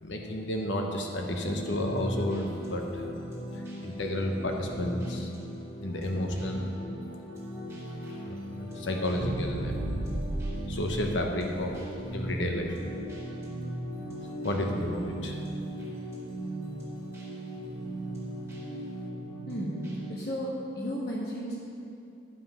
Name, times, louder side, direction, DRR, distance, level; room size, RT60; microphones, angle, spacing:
voice 1, 0.0-3.0 3.8-5.3 5.8-6.7 8.3-9.9 10.7-11.8 12.1-12.9 14.4-15.4, left 1 dB, 90° left, 2 dB, 1.0 m, -31 dB
sound 1, 1.2-20.1, equal, 15° right, 2.0 m, -38 dB
sound 2, 9.1-13.3 13.8-13.9, right 1 dB, 50° right, 0.8 m, -35 dB
voice 2, 19.5-19.8 20.1-21.6, equal, 55° left, -4 dB, 1.3 m, -33 dB
9.9 x 5.7 x 5.6 m, 2.6 s
head